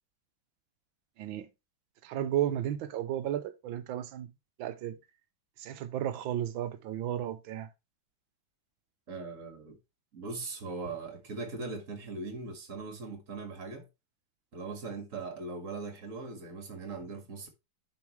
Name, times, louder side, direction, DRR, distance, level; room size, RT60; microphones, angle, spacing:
voice 1, 1.2-1.5 2.0-4.3 4.6-5.0 5.6-7.7, right 11 dB, 80° right, 1.5 m, -33 dB
voice 2, 9.1-9.8 10.1-13.9 14.5-17.5, right 3 dB, 40° right, 2.1 m, -40 dB
10.5 x 5.1 x 3.2 m
omnidirectional pair, 2.2 m